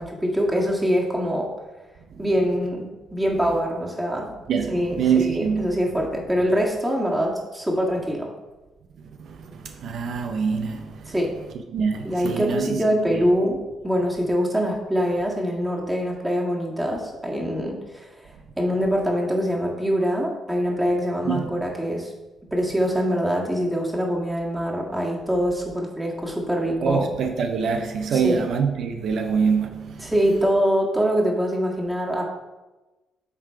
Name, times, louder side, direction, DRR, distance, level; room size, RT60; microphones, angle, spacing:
voice 1, 0.0-1.5 2.2-4.3 4.7-8.3 11.1-11.4 12.0-18.1 18.5-22.1 22.5-27.1 28.1-28.4 30.0-32.2, equal, 10° right, 1.7 m, -24 dB
voice 2, 4.5-5.8 9.3-11.1 11.7-12.8 13.1-13.2 21.3-21.5 26.8-30.1, right 6 dB, 70° right, 0.5 m, -25 dB
8.2 x 3.8 x 4.5 m
cardioid pair, 90°, 0 cm